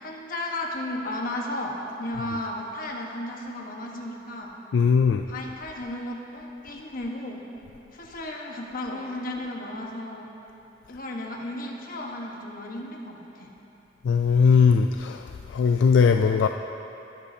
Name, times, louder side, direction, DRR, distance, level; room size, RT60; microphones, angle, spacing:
voice 1, 0.0-4.5 5.3-7.4 7.9-10.3 10.9-13.5, left 1 dB, 50° left, 0 dB, 1.2 m, -34 dB
voice 2, 4.7-5.2 14.0-15.2 15.5-16.5, left 6 dB, 75° left, 5 dB, 0.3 m, -19 dB
18.0 x 8.3 x 2.8 m, 2.9 s
head